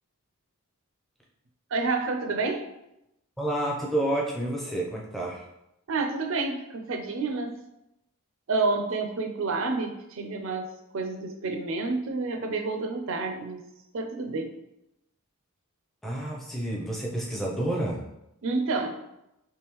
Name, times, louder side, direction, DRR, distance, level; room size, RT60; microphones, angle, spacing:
voice 1, 1.7-2.6 5.9-7.6 8.5-13.6 13.9-14.5 18.4-18.9, right 3 dB, 65° right, 4 dB, 0.5 m, -29 dB
voice 2, 3.4-5.5 16.0-18.1, right 1 dB, ahead, -3 dB, 0.5 m, -29 dB
3.5 x 3.1 x 3.0 m, 0.86 s
head